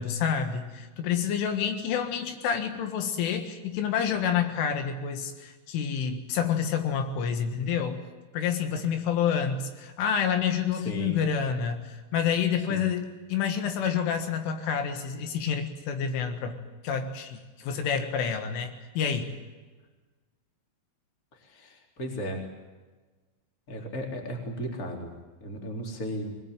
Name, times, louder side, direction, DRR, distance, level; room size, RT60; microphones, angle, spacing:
voice 1, 0.0-8.0 8.3-19.3, left 7 dB, 80° left, 7 dB, 4.1 m, -28 dB
voice 2, 10.7-11.2 12.7-12.9 21.3-22.5 23.7-26.3, equal, 20° left, 2 dB, 3.3 m, -35 dB
22.0 x 21.0 x 9.2 m, 1.3 s
omnidirectional pair, 5.7 m